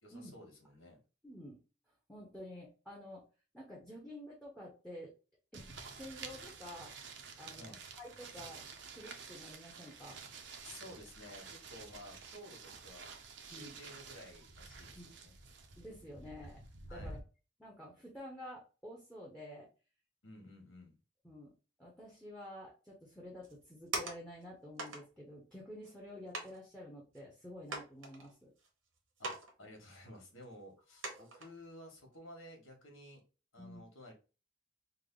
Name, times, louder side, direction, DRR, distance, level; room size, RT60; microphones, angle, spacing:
voice 1, 0.0-1.0 7.6-7.8 10.6-13.1 13.5-15.3 16.9-17.2 20.2-20.9 29.2-29.3 29.6-33.2 33.5-34.1, left 1 dB, 85° left, 1 dB, 1.4 m, -53 dB
voice 2, 1.2-1.6 2.1-3.2 3.5-5.1 5.5-6.9 7.4-8.6 8.9-10.2 13.5-13.8 15.0-15.1 15.8-16.6 16.9-17.2 17.6-19.7 21.2-21.5 21.8-28.5 33.6-33.8, left 1 dB, 5° left, -3 dB, 0.7 m, -50 dB
sound 1, 5.5-17.2, right 4 dB, 60° right, 0.5 m, -50 dB
sound 2, 23.4-24.4 24.8-25.0 25.8-25.9 26.3-26.6 27.1-27.2 27.7-28.7 29.2-29.5 29.8-29.9 30.4-30.5 31.0-31.5 32.0-32.2, right 3 dB, 85° right, 1.0 m, -41 dB
3.3 x 2.1 x 3.6 m, 0.33 s
head